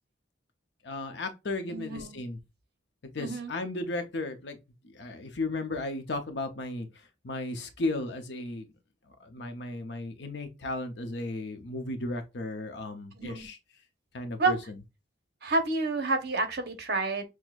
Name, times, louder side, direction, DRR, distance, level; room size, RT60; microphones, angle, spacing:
voice 1, 0.8-2.4 3.1-4.6 4.8-6.9 7.2-8.7 9.2-13.6 14.1-14.8, left 2 dB, 65° left, 0.7 m, -35 dB
voice 2, 1.7-2.2 3.2-3.5 13.2-13.5 14.4-14.5 15.4-17.2, right 3 dB, 55° right, 0.8 m, -29 dB
6.1 x 2.1 x 2.4 m
head